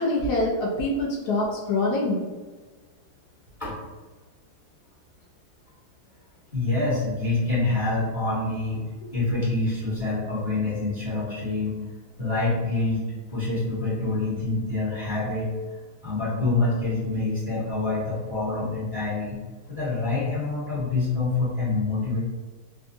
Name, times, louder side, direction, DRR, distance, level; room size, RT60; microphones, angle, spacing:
voice 1, 0.0-2.2, left 2 dB, 70° left, -3 dB, 1.0 m, -25 dB
voice 2, 6.5-8.8 9.1-11.8 12.2-15.5 16.0-19.4 19.7-22.2, left 3 dB, 30° left, -10 dB, 1.1 m, -26 dB
3.7 x 2.4 x 2.5 m, 1.3 s
omnidirectional pair, 2.3 m